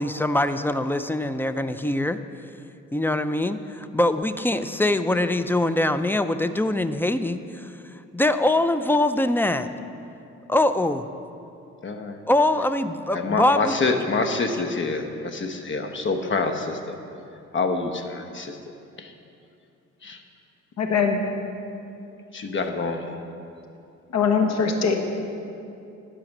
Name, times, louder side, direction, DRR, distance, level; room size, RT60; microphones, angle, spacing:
voice 1, 0.0-2.2 2.9-7.7 8.1-9.7 10.5-11.1 12.3-13.8, left 1 dB, 5° left, 11 dB, 0.3 m, -23 dB
voice 2, 11.8-12.2 13.1-17.0 17.5-18.6 19.0-19.1 20.0-20.2 22.3-23.2, left 3 dB, 40° left, 6 dB, 1.0 m, -26 dB
voice 3, 20.8-21.2 24.1-25.0, left 5 dB, 65° left, 4 dB, 1.3 m, -21 dB
12.0 x 5.0 x 7.2 m, 2.7 s
cardioid pair, 90°, 30 cm